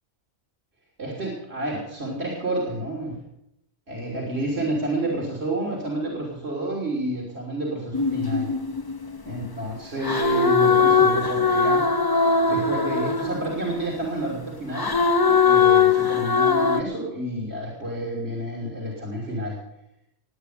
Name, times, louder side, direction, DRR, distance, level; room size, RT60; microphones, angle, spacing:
voice 1, 1.0-3.2 3.9-8.5 9.3-11.9 12.5-15.0 15.3-19.6, right 1 dB, 90° right, -3 dB, 3.7 m, -29 dB
sound 1, 7.9-9.5 10.0-13.9 14.7-16.8, left 5 dB, 25° left, 0.8 m, -20 dB
20.5 x 9.1 x 6.7 m, 0.81 s
omnidirectional pair, 1.0 m